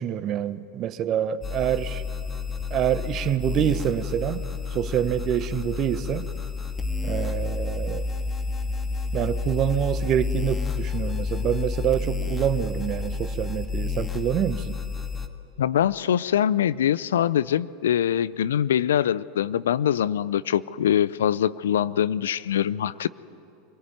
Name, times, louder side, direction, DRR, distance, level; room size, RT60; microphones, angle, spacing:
voice 1, 0.0-2.0 2.7-4.4 4.7-6.3 7.0-8.1 9.1-14.7, right 10 dB, 45° right, 13 dB, 1.1 m, -26 dB
sound 1, 1.4-15.3, left 4 dB, 20° left, 2.0 m, -30 dB
voice 2, 15.6-23.1, left 10 dB, 80° left, 18 dB, 0.5 m, -23 dB
25.0 x 18.0 x 9.5 m, 2.8 s
hypercardioid pair, 90°, 0 cm